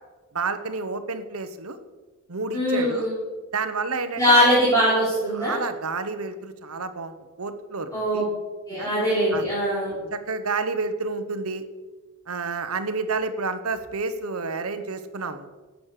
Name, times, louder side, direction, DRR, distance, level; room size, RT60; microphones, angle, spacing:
voice 1, 0.3-1.8 2.3-3.1 3.5-4.4 5.3-8.3 8.8-8.9 9.3-9.5 10.1-11.6 12.3-15.5, right 4 dB, 90° right, 10 dB, 1.1 m, -30 dB
voice 2, 2.5-3.1 4.2-5.6 7.9-8.2 8.7-10.0, equal, 15° left, -8 dB, 4.1 m, -21 dB
11.5 x 8.6 x 6.6 m, 1.3 s
head